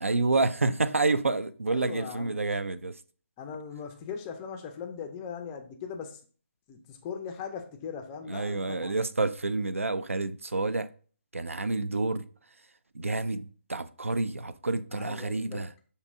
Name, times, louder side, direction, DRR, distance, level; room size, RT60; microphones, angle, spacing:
voice 1, 0.0-3.0 8.3-10.9 11.3-12.3 12.9-15.7, right 3 dB, 90° right, 0.3 m, -29 dB
voice 2, 1.7-2.5 3.4-6.2 6.7-9.0 14.9-15.6, left 6 dB, 15° left, 0.4 m, -39 dB
6.4 x 2.7 x 2.5 m
figure-of-eight pair, 150°, 7 cm